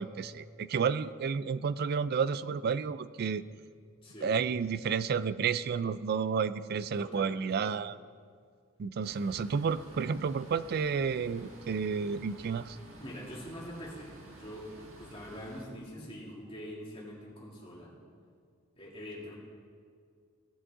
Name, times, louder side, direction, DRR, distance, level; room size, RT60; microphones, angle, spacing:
voice 1, 0.0-3.4 4.2-8.0 8.8-12.8, right 6 dB, 50° right, 16 dB, 0.3 m, -31 dB
voice 2, 4.0-4.4 7.0-7.7 13.0-14.1 14.4-14.7 15.0-17.9 18.8-19.4, equal, 25° left, -4 dB, 2.4 m, -44 dB
sound 1, 9.0-15.6, right 2 dB, 80° right, 1.6 m, -52 dB
17.0 x 8.0 x 3.7 m, 2.1 s
head